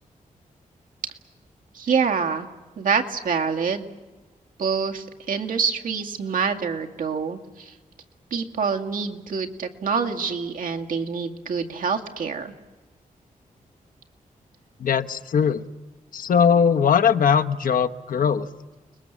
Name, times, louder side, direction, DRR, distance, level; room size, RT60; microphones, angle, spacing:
voice 1, 1.7-2.5 2.8-3.8 4.6-7.7 8.3-12.5, right 5 dB, 75° right, 3 dB, 2.2 m, -26 dB
voice 2, 14.8-15.6 16.1-18.5, left 7 dB, 75° left, 8 dB, 1.1 m, -20 dB
29.5 x 21.5 x 7.4 m, 1.2 s
wide cardioid pair, 150°, 14 cm